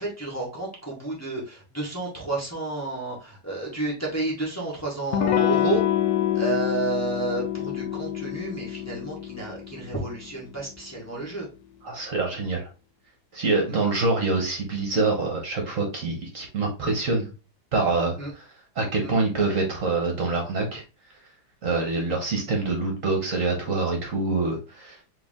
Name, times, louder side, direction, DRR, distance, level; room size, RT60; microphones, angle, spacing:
voice 1, 0.0-5.9 6.3-11.5 13.7-13.8 18.2-18.3 19.0-19.1, right 2 dB, 10° left, -4 dB, 1.4 m, -31 dB
Electric guitar / Strum, 5.1-10.5, left 11 dB, 70° left, 1.0 m, -26 dB
voice 2, 11.8-12.7 13.3-17.3 17.7-18.5 18.7-20.8 21.6-25.0, right 3 dB, 55° right, 1 dB, 1.4 m, -25 dB
4.7 x 3.1 x 3.6 m, 0.31 s
omnidirectional pair, 1.8 m